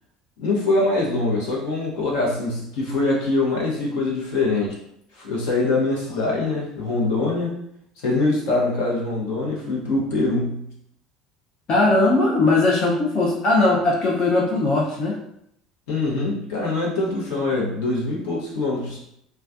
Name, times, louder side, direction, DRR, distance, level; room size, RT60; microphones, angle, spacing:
voice 1, 0.4-4.8 5.1-7.5 8.0-10.7 15.9-19.0, left 2 dB, 65° left, -3 dB, 0.9 m, -23 dB
voice 2, 11.7-15.2, left 2 dB, 45° left, -4 dB, 0.6 m, -19 dB
3.2 x 2.3 x 2.5 m, 0.74 s
hypercardioid pair, 65°, 2 cm